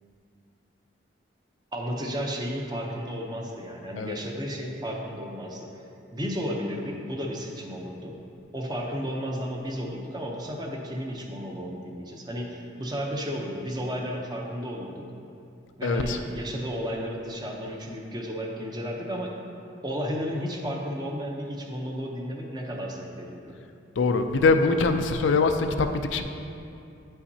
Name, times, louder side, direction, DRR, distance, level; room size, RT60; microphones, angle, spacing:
voice 1, 1.7-5.8 6.1-8.2 8.5-15.0 15.8-19.3 19.8-23.6, equal, 20° right, 0 dB, 0.7 m, -33 dB
voice 2, 15.8-16.2 24.0-26.2, left 4 dB, 80° left, 7 dB, 0.4 m, -23 dB
9.0 x 5.6 x 2.7 m, 2.6 s
head